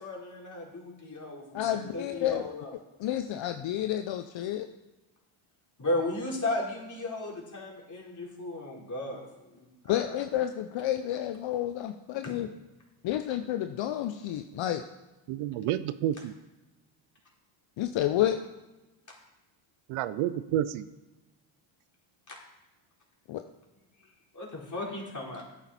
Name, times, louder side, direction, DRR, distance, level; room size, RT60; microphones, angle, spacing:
voice 1, 0.0-2.7 5.8-10.1 22.3-22.4 24.0-25.4, left 2 dB, 35° left, -3 dB, 4.2 m, -35 dB
voice 2, 1.5-2.5 3.0-4.7 9.9-12.5 13.0-14.8 17.8-18.4 23.3-23.4, left 12 dB, 65° left, 8 dB, 0.7 m, -30 dB
voice 3, 15.3-16.3 19.9-20.9, right 12 dB, 80° right, 15 dB, 0.7 m, -30 dB
11.0 x 9.1 x 4.3 m, 1.1 s
supercardioid pair, 60°, 49 cm